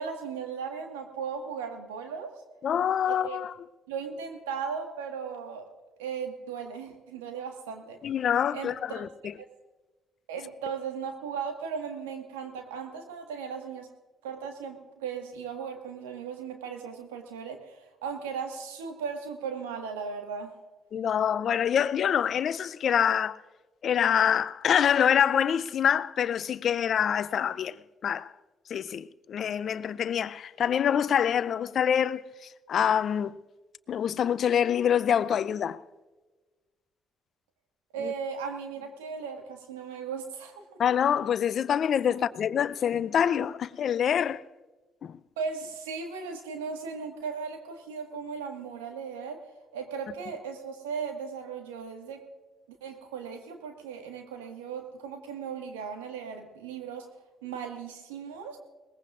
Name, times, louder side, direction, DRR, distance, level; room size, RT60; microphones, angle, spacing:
voice 1, 0.0-2.3 3.0-3.4 3.9-5.6 6.0-8.0 8.5-9.0 9.4-9.5 10.3-13.9 14.2-20.6 37.9-40.6 42.1-42.2 45.4-49.4 49.7-52.2 52.7-57.1 57.4-58.6, right 6 dB, 85° right, 1.6 m, -37 dB
voice 2, 2.6-3.5 8.0-9.3 20.9-23.4 23.8-27.8 28.0-28.3 28.7-33.4 33.9-35.8 38.0-38.1 40.8-44.4 45.0-45.2, left 8 dB, 60° left, 0.5 m, -26 dB
21.5 x 20.0 x 2.5 m
hypercardioid pair, 45°, 0 cm